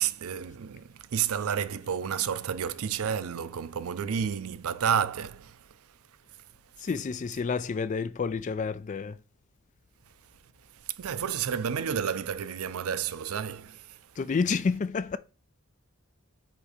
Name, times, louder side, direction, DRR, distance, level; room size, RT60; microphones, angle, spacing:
voice 1, 0.0-5.6 11.0-14.0, right 8 dB, 85° right, 0.5 m, -30 dB
voice 2, 6.8-9.1 14.2-15.2, left 5 dB, 35° left, 0.3 m, -29 dB
7.3 x 2.7 x 4.9 m
head